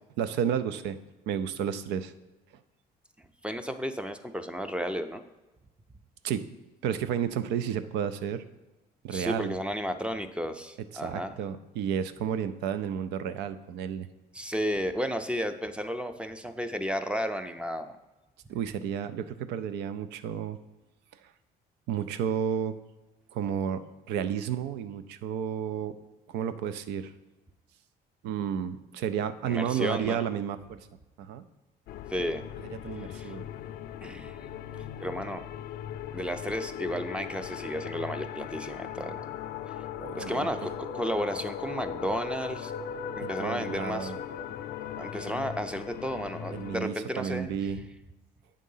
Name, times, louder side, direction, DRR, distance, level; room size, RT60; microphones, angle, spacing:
voice 1, 0.2-1.0 1.3-2.1 6.2-6.5 6.8-8.4 9.0-9.5 10.9-14.1 18.5-20.6 21.9-22.8 23.3-26.0 26.3-27.1 28.2-30.8 31.2-31.4 32.8-33.4 40.0-40.5 43.2-44.2 46.5-47.8, right 8 dB, 90° right, 13 dB, 0.5 m, -31 dB
voice 2, 3.4-5.2 9.1-11.4 14.3-18.0 29.5-30.3 32.1-32.4 33.1-33.3 34.0-34.4 35.0-35.4 36.1-39.3 40.2-42.7 43.2-44.1 45.0-47.5, equal, 5° right, 9 dB, 0.4 m, -33 dB
sound 1, 31.9-46.8, left 9 dB, 65° left, 0.4 m, -38 dB
8.4 x 3.8 x 5.5 m, 1.1 s
cardioid pair, 110°, 17 cm